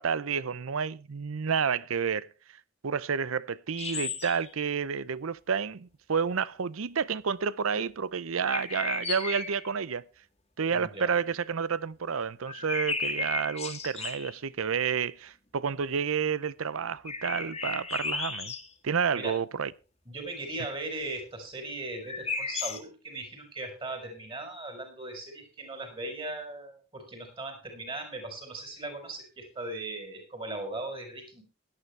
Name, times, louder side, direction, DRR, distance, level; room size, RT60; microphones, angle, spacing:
voice 1, 0.0-2.3 2.8-10.0 10.6-18.5 18.8-19.7, right 6 dB, 85° right, 0.6 m, -30 dB
sound 1, 3.7-4.5 8.4-9.7 12.5-14.3 17.1-18.7 22.0-22.8, left 4 dB, 30° left, 1.9 m, -34 dB
voice 2, 10.7-11.1 19.1-19.3 20.1-31.4, right 2 dB, 25° right, 4.7 m, -38 dB
17.5 x 12.0 x 3.2 m
head